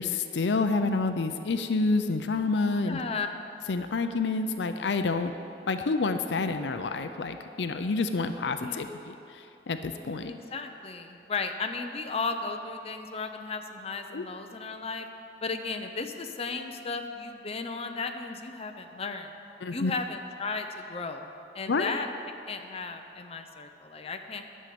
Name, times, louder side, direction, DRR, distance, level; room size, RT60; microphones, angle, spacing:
voice 1, 0.0-3.0 3.7-5.3 5.7-10.3 14.1-14.2 19.6-19.9 21.7-21.9, left 3 dB, 80° left, 8 dB, 0.5 m, -28 dB
voice 2, 2.8-3.3 8.6-8.9 10.2-15.1 15.4-19.3 19.7-21.3 21.5-22.1 22.5-24.4, left 4 dB, 35° left, 5 dB, 0.7 m, -35 dB
11.0 x 6.5 x 8.5 m, 2.8 s
head